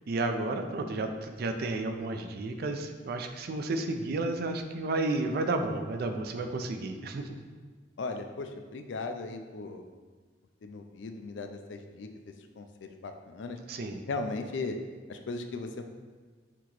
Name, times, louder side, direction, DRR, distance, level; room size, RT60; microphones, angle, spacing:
voice 1, 0.1-7.3 13.7-14.0, right 2 dB, 60° right, 6 dB, 0.4 m, -32 dB
voice 2, 8.0-9.8 10.6-12.1 12.6-13.6 14.1-14.8 15.1-15.9, left 3 dB, 85° left, 6 dB, 0.4 m, -37 dB
5.9 x 2.9 x 3.0 m, 1.4 s
head